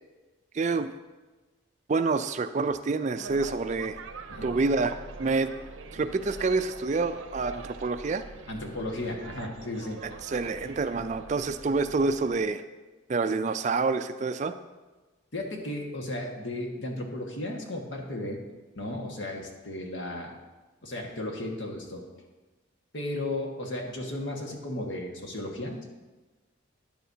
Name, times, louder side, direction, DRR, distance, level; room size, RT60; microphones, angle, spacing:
voice 1, 0.5-0.9 1.9-4.0 4.4-5.5 5.9-8.2 10.3-12.6 13.1-14.5, right 3 dB, 35° right, 10 dB, 0.4 m, -27 dB
sound 1, 3.1-12.4, right 3 dB, 80° right, 0.6 m, -44 dB
voice 2, 8.5-10.0 15.3-18.4 18.7-20.3 20.8-22.1 22.9-25.9, left 1 dB, 70° left, 1 dB, 1.7 m, -34 dB
12.5 x 10.0 x 2.8 m, 1.2 s
head